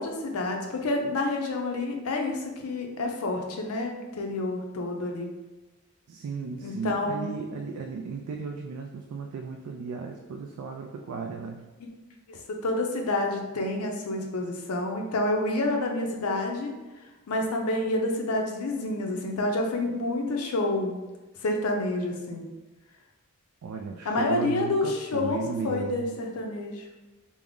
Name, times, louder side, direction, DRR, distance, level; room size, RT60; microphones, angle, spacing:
voice 1, 0.0-5.3 6.6-7.4 12.3-16.7 17.3-21.0 21.4-22.5 24.1-26.8, left 2 dB, 85° left, 2 dB, 0.5 m, -28 dB
voice 2, 6.1-11.6 23.6-26.1, right 5 dB, 80° right, 2 dB, 0.3 m, -35 dB
3.5 x 2.0 x 3.6 m, 1.1 s
head